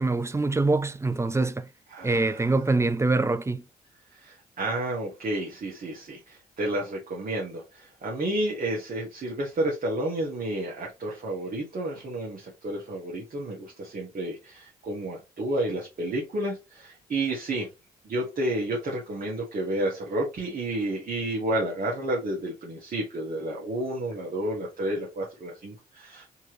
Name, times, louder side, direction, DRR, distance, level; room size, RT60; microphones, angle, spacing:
voice 1, 0.0-1.7 2.0-3.6, right 3 dB, 15° right, 0.5 m, -24 dB
voice 2, 1.9-2.4 4.1-17.7 18.0-26.3, right 1 dB, 45° right, 1.6 m, -31 dB
4.4 x 3.0 x 3.1 m
hypercardioid pair, 45°, 19 cm